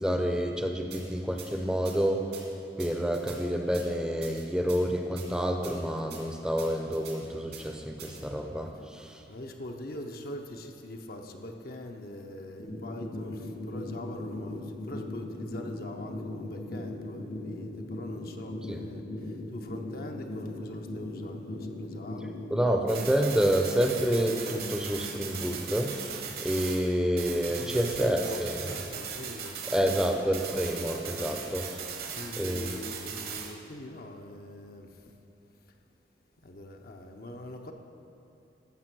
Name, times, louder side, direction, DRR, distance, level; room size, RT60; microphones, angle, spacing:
voice 1, 0.0-2.5 2.8-9.2 18.7-18.8 22.5-28.5 29.7-31.7 32.4-32.7, equal, 5° right, 4 dB, 0.7 m, -28 dB
sound 1, 0.9-1.0 1.4-1.5 1.8-2.0 2.3-2.4 2.8-3.4 3.7-3.8 4.2-4.8 5.2-5.3 5.6-5.7 6.1-6.2 6.6-7.2 7.5-7.6 8.0-8.2, right 8 dB, 70° right, 2.1 m, -45 dB
voice 2, 8.0-8.3 8.7-8.8 9.3-22.4 27.5-30.1 31.2-35.1 36.4-37.7, left 1 dB, 55° left, 3 dB, 0.8 m, -43 dB
sound 2, 12.6-22.6, left 2 dB, 80° left, 3.1 m, -38 dB
sound 3, 22.9-26.9 27.2-33.5, right 6 dB, 55° right, 1.1 m, -38 dB
14.0 x 6.3 x 6.1 m, 2.8 s
head